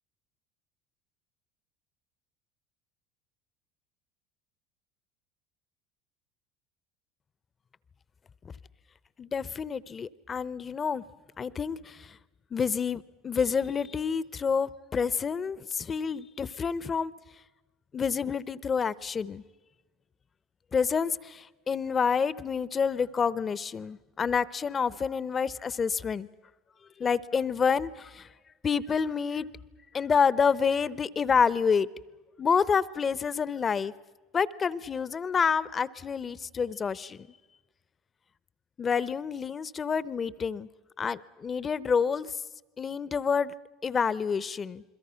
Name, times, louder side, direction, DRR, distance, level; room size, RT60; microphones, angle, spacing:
voice 1, 9.2-11.0 11.4-12.2 12.5-17.1 17.9-19.4 20.7-26.3 27.0-28.3 28.6-29.5 29.9-31.9 32.4-33.9 34.3-37.3 38.8-40.7 41.0-42.4 42.8-43.5 43.8-44.8, left 6 dB, 30° left, 19 dB, 0.8 m, -28 dB
28.5 x 22.0 x 5.8 m, 1.2 s
hypercardioid pair, 85°, 0 cm